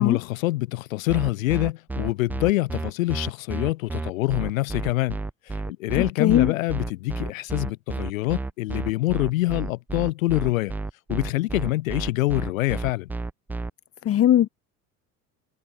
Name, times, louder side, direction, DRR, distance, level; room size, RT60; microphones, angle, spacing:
voice 1, 0.0-5.2 5.7-10.7 11.1-13.1, left 18 dB, 65° left, 2.9 m, -25 dB
sound 1, 1.1-13.7, right 3 dB, 5° right, 0.3 m, -31 dB
voice 2, 5.9-6.5 14.0-14.5, left 11 dB, 30° left, 1.3 m, -20 dB
figure-of-eight pair, 70°, 44 cm